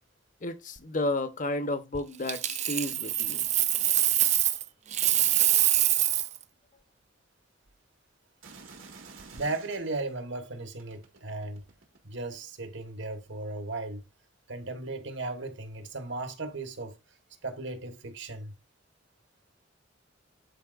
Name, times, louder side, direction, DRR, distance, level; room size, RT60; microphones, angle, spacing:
voice 1, 0.4-3.4, left 1 dB, 40° left, 0.9 m, -32 dB
Coin (dropping), 2.3-4.6 4.9-6.4 9.2-9.4, right 13 dB, 35° right, 0.5 m, -25 dB
sound 1, 8.4-10.1 10.8-12.2 13.0-13.2, right 4 dB, 85° right, 1.8 m, -50 dB
voice 2, 9.3-11.7 12.0-14.0 14.5-17.0 17.4-18.5, right 2 dB, 65° right, 1.3 m, -36 dB
11.5 x 4.3 x 2.5 m
head